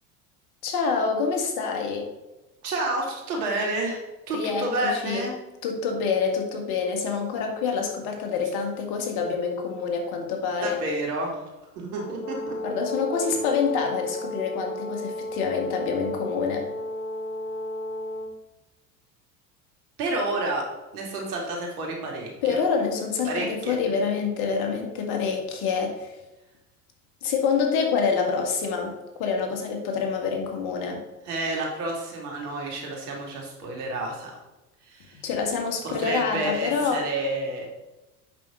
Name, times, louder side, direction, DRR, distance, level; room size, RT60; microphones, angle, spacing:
voice 1, 0.6-2.1 4.3-5.3 5.6-10.8 12.6-16.6 22.4-26.2 27.2-31.0 35.2-37.1, left 5 dB, 55° left, 3 dB, 2.1 m, -26 dB
voice 2, 2.6-4.0 4.3-5.3 10.6-11.5 11.7-12.6 20.0-20.7 20.9-22.6 23.3-23.8 31.2-34.3 34.9-35.2 35.8-37.7, right 2 dB, 75° right, -1 dB, 2.9 m, -30 dB
Brass instrument, 11.9-18.3, left 1 dB, 80° left, 1.6 m, -33 dB
8.2 x 6.2 x 3.9 m, 1.0 s
hypercardioid pair, 85°, 46 cm